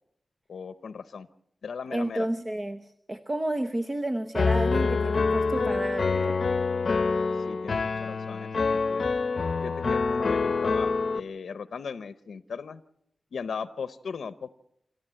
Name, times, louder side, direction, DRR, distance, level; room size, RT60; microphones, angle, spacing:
voice 1, 0.5-1.3 1.6-2.3 7.5-9.0 9.6-12.8 13.3-14.5, left 6 dB, 90° left, 13 dB, 0.7 m, -37 dB
voice 2, 1.9-6.4, right 1 dB, 25° right, 7 dB, 0.9 m, -31 dB
Piano, 4.3-11.2, left 4 dB, 55° left, 0.8 m, -26 dB
29.0 x 13.0 x 7.6 m, 0.76 s
wide cardioid pair, 120°, 0 cm